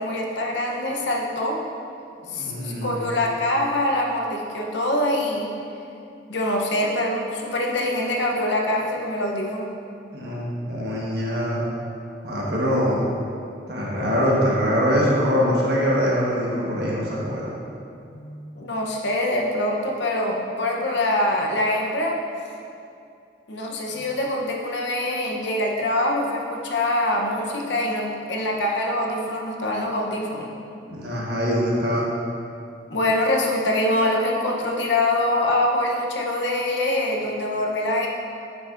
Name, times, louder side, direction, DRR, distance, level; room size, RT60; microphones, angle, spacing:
voice 1, 0.0-1.6 2.3-5.5 6.3-9.7 18.1-22.2 23.5-30.5 32.9-38.1, left 1 dB, 75° left, -1 dB, 0.9 m, -24 dB
voice 2, 2.2-3.2 10.1-11.6 12.2-13.1 13.7-17.5 30.9-32.2, equal, 60° right, -5 dB, 1.4 m, -23 dB
9.5 x 5.7 x 2.6 m, 2.5 s
head